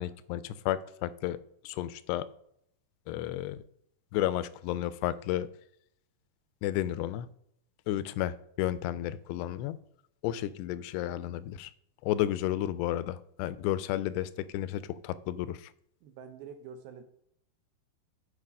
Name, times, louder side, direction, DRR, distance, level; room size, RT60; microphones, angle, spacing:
voice 1, 0.0-1.4 1.6-2.3 3.1-3.6 4.1-5.5 6.6-7.3 7.9-9.8 10.2-11.7 12.0-15.7, left 13 dB, 90° left, 16 dB, 2.7 m, -32 dB
voice 2, 16.0-17.0, right 6 dB, 75° right, 7 dB, 2.4 m, -46 dB
8.5 x 4.9 x 5.3 m, 0.72 s
omnidirectional pair, 4.8 m